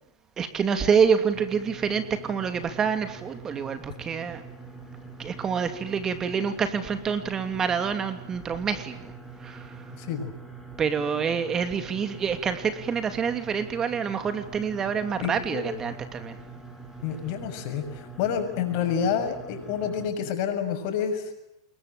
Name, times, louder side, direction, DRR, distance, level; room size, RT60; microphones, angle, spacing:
voice 1, 0.4-4.4 5.2-9.1 9.4-9.8 10.8-16.4, right 6 dB, 25° right, 9 dB, 2.8 m, -27 dB
sound 1, 1.3-20.1, right 4 dB, 5° right, 7.8 m, -44 dB
voice 2, 10.0-10.3 15.2-15.7 17.0-21.3, left 7 dB, 50° left, 6 dB, 6.9 m, -28 dB
27.5 x 22.5 x 9.1 m, 0.85 s
hypercardioid pair, 115°, 2 cm